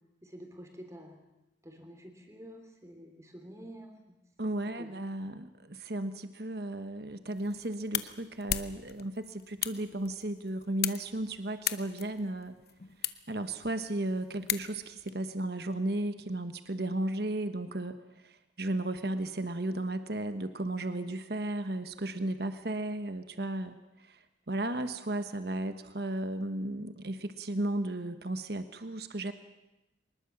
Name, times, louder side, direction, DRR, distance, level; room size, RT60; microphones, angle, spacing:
voice 1, 0.2-1.2 1.6-4.2 4.8-4.9, equal, 15° right, 5 dB, 3.4 m, -48 dB
voice 2, 4.4-12.6 13.3-18.0 18.2-24.2 24.5-29.3, right 1 dB, 55° right, 9 dB, 1.2 m, -34 dB
sound 1, 7.3-15.1, left 11 dB, 55° left, 0.9 m, -39 dB
24.0 x 20.5 x 7.4 m, 0.96 s
head